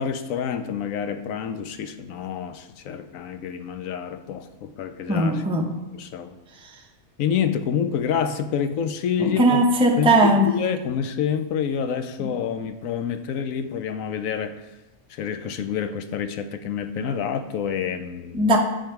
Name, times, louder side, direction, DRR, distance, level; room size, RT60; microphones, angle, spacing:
voice 1, 0.0-5.4 5.9-6.4 7.2-9.6 10.0-14.6 15.1-18.5, left 7 dB, 70° left, 10 dB, 0.9 m, -28 dB
voice 2, 5.1-5.8 9.2-10.6 12.2-12.3 18.3-18.6, right 1 dB, 5° right, 1 dB, 0.4 m, -19 dB
9.6 x 4.7 x 4.5 m, 1.0 s
omnidirectional pair, 1.5 m